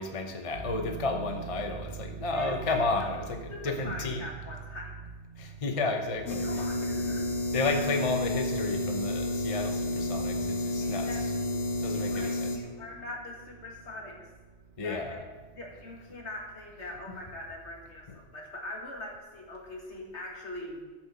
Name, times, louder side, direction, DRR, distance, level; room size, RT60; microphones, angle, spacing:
voice 1, 0.0-4.3 5.4-6.7 7.5-11.3 11.8-12.7 14.8-15.3 16.8-17.2 18.1-18.2, left 3 dB, 30° left, 4 dB, 0.9 m, -32 dB
sound 1, 0.5-17.9, right 6 dB, 60° right, 1.6 m, -44 dB
voice 2, 2.3-3.1 3.5-4.9 6.4-7.3 10.8-11.6 11.9-14.3 14.8-15.2 15.6-20.8, left 1 dB, 65° left, -1 dB, 2.4 m, -42 dB
sound 2, 6.3-12.6, left 1 dB, 85° left, 1.6 m, -31 dB
14.0 x 6.0 x 6.5 m, 1.2 s
omnidirectional pair, 1.2 m